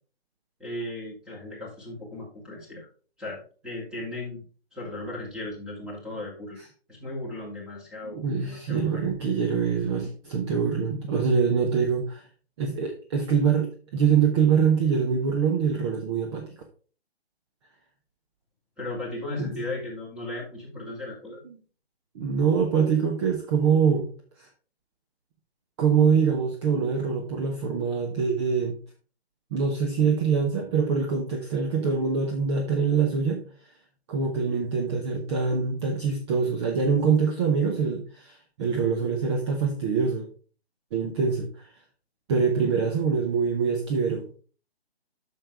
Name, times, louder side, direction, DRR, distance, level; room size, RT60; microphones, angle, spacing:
voice 1, 0.6-2.9 3.2-4.4 4.7-6.6 6.9-9.0 18.8-21.5, left 2 dB, ahead, -4 dB, 2.5 m, -36 dB
voice 2, 8.0-12.2 12.6-16.4 19.4-19.7 22.1-24.1 24.4-24.5 25.8-28.8 29.5-33.4 34.1-40.3 40.9-41.5 42.3-44.3, right 6 dB, 25° right, 3 dB, 1.0 m, -24 dB
8.7 x 6.6 x 3.4 m, 0.39 s
figure-of-eight pair, 145°, 32 cm